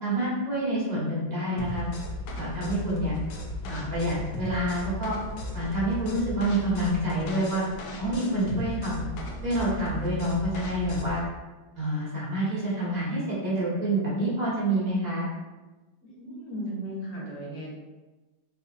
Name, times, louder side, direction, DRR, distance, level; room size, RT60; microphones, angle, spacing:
voice 1, 0.0-1.9 2.4-3.2 3.7-5.2 5.5-7.6 8.0-9.1 9.4-11.2 11.7-15.3, right 1 dB, 45° right, -7 dB, 0.5 m, -27 dB
sound 1, 1.6-11.3, left 1 dB, 75° left, 1.1 m, -36 dB
voice 2, 16.0-17.7, right 1 dB, 55° left, -5 dB, 1.3 m, -36 dB
4.1 x 2.6 x 2.6 m, 1.2 s
omnidirectional pair, 2.3 m